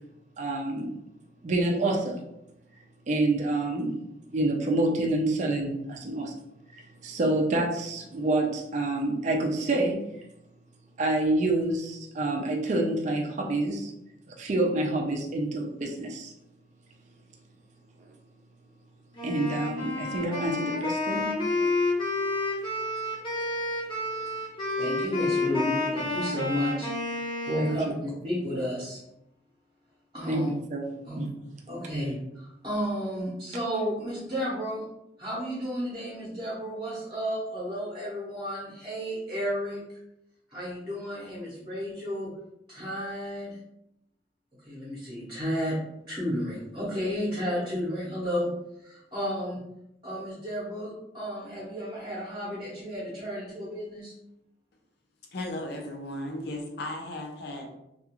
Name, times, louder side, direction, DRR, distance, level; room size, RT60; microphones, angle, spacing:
voice 1, 0.4-0.9 1.4-2.2 3.1-4.0 4.3-6.3 6.7-10.0 11.0-13.9 14.3-16.3 19.2-21.3 27.6-27.9 30.3-30.4 30.7-30.8 31.2-31.3, right 2 dB, 40° right, 1 dB, 0.4 m, -27 dB
Wind instrument woodwind instrument, 19.1-27.9, left 2 dB, 25° left, 0.7 m, -30 dB
voice 2, 24.8-26.9 27.4-29.0 30.1-30.5 31.0-31.2 31.7-34.8 35.2-39.8 40.5-42.3 42.7-43.6 44.7-45.8 46.1-48.5 48.8-49.6 50.0-54.1, equal, 25° right, -8 dB, 0.8 m, -32 dB
voice 3, 55.3-57.7, left 1 dB, 60° left, 2 dB, 0.5 m, -35 dB
2.4 x 2.3 x 2.9 m, 0.84 s
head